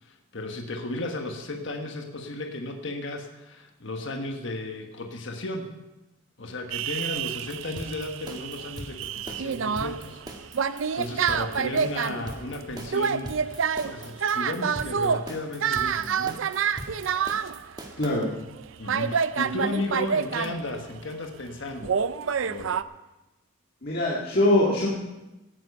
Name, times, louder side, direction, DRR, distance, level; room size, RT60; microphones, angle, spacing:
voice 1, 0.0-5.7 6.4-10.2 10.5-16.4 18.8-22.0 22.4-22.8, left 2 dB, 60° left, 3 dB, 1.4 m, -34 dB
sound 1, 6.7-17.7 18.1-18.2 18.6-18.7 18.9-21.1 21.8-22.8, right 6 dB, 70° right, 0.5 m, -28 dB
sound 2, 6.8-18.1, right 1 dB, 20° right, 1.4 m, -40 dB
voice 2, 18.0-18.3 23.8-24.9, left 1 dB, 45° left, -5 dB, 1.9 m, -22 dB
17.0 x 9.6 x 5.4 m, 1.0 s
head